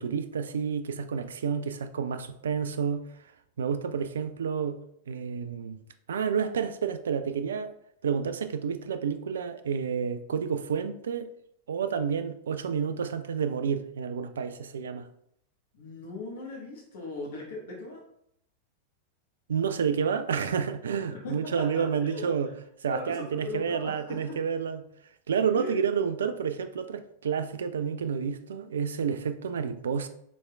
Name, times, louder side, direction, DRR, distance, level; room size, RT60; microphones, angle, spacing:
voice 1, 0.0-3.0 3.6-4.8 5.1-5.8 6.1-7.7 8.0-11.3 11.7-15.1 19.5-22.5 22.8-24.8 25.3-30.1, right 6 dB, 65° right, 0.4 m, -30 dB
voice 2, 15.7-18.0 21.1-22.3 22.9-24.4 25.5-25.8, left 2 dB, 55° left, 1.3 m, -39 dB
6.1 x 3.5 x 2.3 m
figure-of-eight pair, 90°, 0 cm